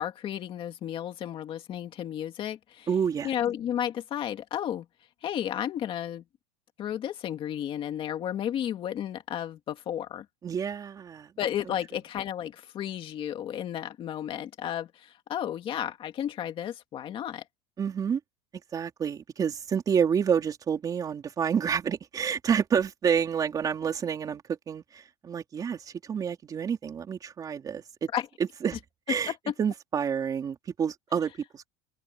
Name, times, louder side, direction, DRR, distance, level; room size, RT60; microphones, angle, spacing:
voice 1, 0.0-2.9 3.2-4.9 5.2-6.2 6.8-10.3 11.4-17.4 28.1-28.3 29.5-29.6, left 10 dB, 30° left, 2.2 m, -33 dB
voice 2, 2.9-3.3 10.4-11.3 17.8-18.2 18.7-28.1 28.6-28.8 29.1-29.3 29.6-31.7, right 7 dB, 20° right, 3.7 m, -29 dB
open air
cardioid pair, 165°, 17 cm